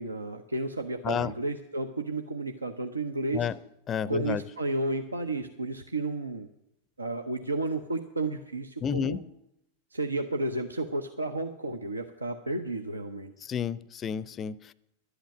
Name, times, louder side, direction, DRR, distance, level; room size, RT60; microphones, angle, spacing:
voice 1, 0.0-3.5 4.1-6.5 7.0-9.2 9.9-13.3, right 2 dB, 80° right, 6 dB, 0.7 m, -32 dB
voice 2, 3.9-4.4 8.8-9.3 13.4-14.7, left 8 dB, 25° left, 20 dB, 0.5 m, -31 dB
11.5 x 8.1 x 9.1 m, 0.83 s
figure-of-eight pair, 90°, 0 cm